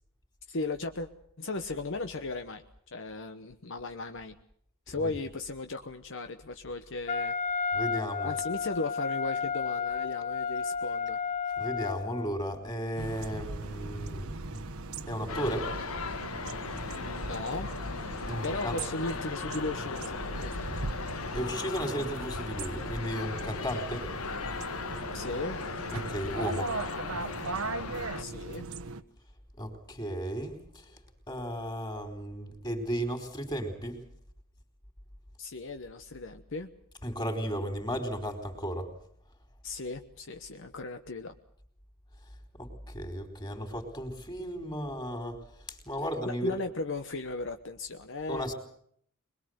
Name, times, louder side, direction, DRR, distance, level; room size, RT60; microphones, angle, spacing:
voice 1, 0.5-1.1 1.4-2.6 2.9-4.4 4.9-7.3 8.2-11.2 16.8-17.7 18.2-20.5 25.1-25.6 28.2-28.7 35.4-36.7 39.6-41.3 46.2-48.5, left 3 dB, 60° left, 7 dB, 1.1 m, -36 dB
Wind instrument woodwind instrument, 7.1-12.3, left 6 dB, 40° left, 1.4 m, -32 dB
voice 2, 7.7-8.3 11.6-15.7 18.3-18.8 21.3-24.0 25.9-26.7 29.6-30.8 31.3-34.0 37.0-38.9 42.6-45.4 45.7-46.6 48.3-48.5, equal, 20° left, 7 dB, 4.2 m, -35 dB
sound 1, 13.0-29.0, right 3 dB, 85° right, 1.3 m, -39 dB
sound 2, 15.3-28.2, left 4 dB, 80° left, 1.3 m, -38 dB
23.0 x 22.0 x 8.0 m, 0.67 s
head